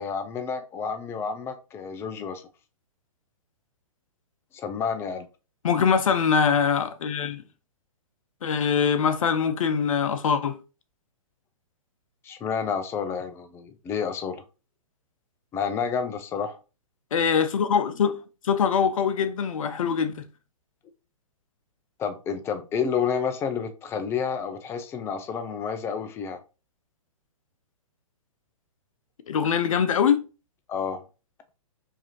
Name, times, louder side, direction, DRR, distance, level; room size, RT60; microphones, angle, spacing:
voice 1, 0.0-2.4 4.5-5.3 12.2-14.4 15.5-16.6 22.0-26.4 30.7-31.0, left 6 dB, 15° left, 0.4 m, -30 dB
voice 2, 5.6-7.4 8.4-10.6 17.1-18.2 18.4-20.3 29.3-30.2, left 6 dB, 70° left, 0.6 m, -23 dB
4.7 x 2.7 x 2.9 m
hypercardioid pair, 125°, 18 cm